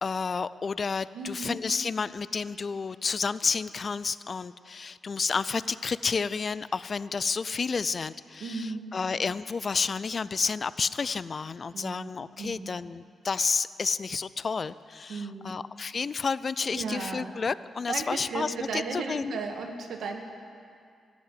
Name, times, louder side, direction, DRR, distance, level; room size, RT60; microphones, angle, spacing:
voice 1, 0.0-19.4, left 5 dB, 40° left, 17 dB, 0.4 m, -30 dB
voice 2, 1.1-1.7 8.4-8.9 11.7-12.1 12.4-12.7 15.1-15.5 16.7-17.3 17.9-20.2, right 4 dB, 75° right, 3 dB, 1.6 m, -35 dB
14.5 x 8.2 x 10.0 m, 2.3 s
cardioid pair, 100°, 0 cm